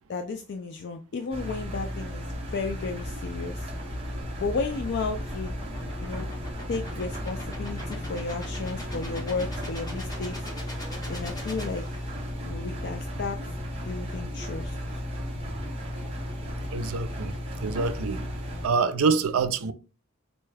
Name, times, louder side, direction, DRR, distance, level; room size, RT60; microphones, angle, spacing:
voice 1, 0.1-3.7 4.4-5.5 6.0-6.3 6.7-10.4 11.1-11.8 12.4-13.4 13.8-15.0, left 4 dB, 50° left, 0.3 m, -33 dB
Engine, 1.3-18.7, equal, 25° right, 0.7 m, -35 dB
sound 1, 3.0-12.4, left 1 dB, 20° left, 1.2 m, -42 dB
voice 2, 16.7-17.3 17.6-18.2 18.6-19.7, right 5 dB, 80° right, 0.4 m, -25 dB
4.2 x 2.2 x 3.2 m
head